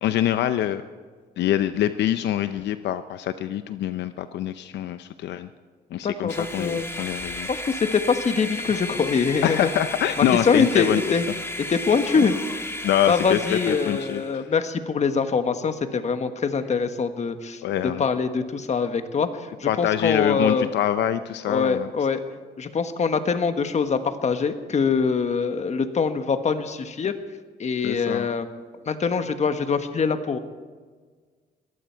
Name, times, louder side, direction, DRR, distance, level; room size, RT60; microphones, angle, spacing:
voice 1, 0.0-0.8 1.4-5.5 5.9-7.5 8.7-8.8 9.4-11.0 12.8-14.5 17.6-18.0 19.7-21.9 27.8-28.3, left 11 dB, 80° left, 11 dB, 0.6 m, -25 dB
voice 2, 6.0-6.9 7.5-9.7 10.2-11.3 11.7-12.3 13.1-17.6 18.0-20.7 21.4-22.2 22.6-27.1 27.6-28.5 28.9-30.4, left 5 dB, 40° left, 9 dB, 1.3 m, -24 dB
sound 1, 6.3-14.3, left 1 dB, 15° left, 1.6 m, -34 dB
21.5 x 14.5 x 4.5 m, 1.5 s
cardioid pair, 100°, 18 cm